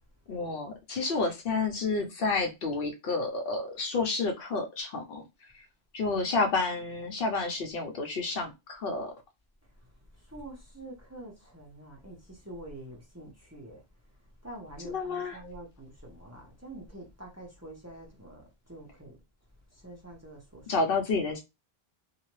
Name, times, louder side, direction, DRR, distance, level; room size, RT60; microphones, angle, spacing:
voice 1, 0.3-5.2 5.9-9.1 14.8-15.4 20.7-21.4, left 3 dB, 65° left, 0.8 m, -30 dB
voice 2, 10.3-13.8 14.4-19.2 19.7-20.7, right 1 dB, 15° right, 0.8 m, -46 dB
2.7 x 2.2 x 3.0 m
omnidirectional pair, 1.0 m